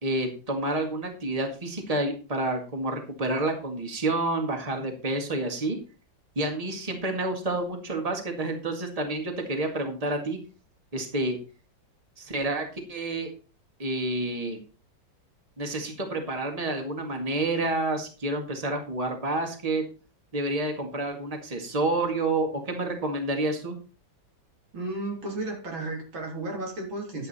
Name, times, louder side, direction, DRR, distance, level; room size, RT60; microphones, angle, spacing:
voice 1, 0.0-5.8 6.4-10.4 10.9-11.4 12.2-13.3 13.8-14.6 15.6-19.8 20.3-23.8, right 2 dB, 20° right, 4 dB, 2.0 m, -29 dB
voice 2, 24.7-27.3, right 2 dB, 80° right, 0 dB, 4.0 m, -33 dB
11.5 x 8.4 x 4.2 m, 0.36 s
omnidirectional pair, 2.1 m